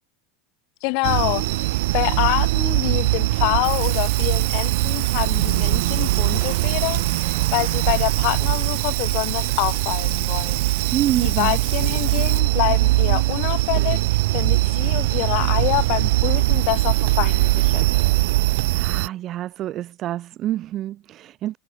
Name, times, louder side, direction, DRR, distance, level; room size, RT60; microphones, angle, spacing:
voice 1, 0.8-10.9 11.2-18.0, left 33 dB, 55° left, 0.9 m, -26 dB
sound 1, 1.0-19.1, right 20 dB, 70° right, 0.3 m, -21 dB
Water tap faucet / Sink (filling or washing), 3.6-12.4, right 31 dB, 55° right, 2.9 m, -33 dB
voice 2, 10.9-11.6 18.7-21.6, right 13 dB, 35° right, 1.0 m, -27 dB
supercardioid pair, 145°, 0 cm